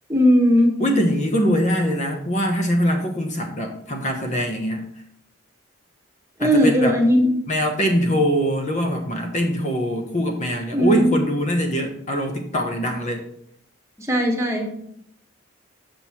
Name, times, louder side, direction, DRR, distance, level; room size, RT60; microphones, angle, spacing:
voice 1, 0.1-0.7 6.4-7.3 10.7-11.2 14.0-14.7, equal, 15° right, 1 dB, 1.3 m, -17 dB
voice 2, 0.8-4.9 6.4-7.0 7.5-13.2, equal, 35° left, 3 dB, 1.1 m, -23 dB
7.6 x 6.2 x 4.4 m, 0.69 s
head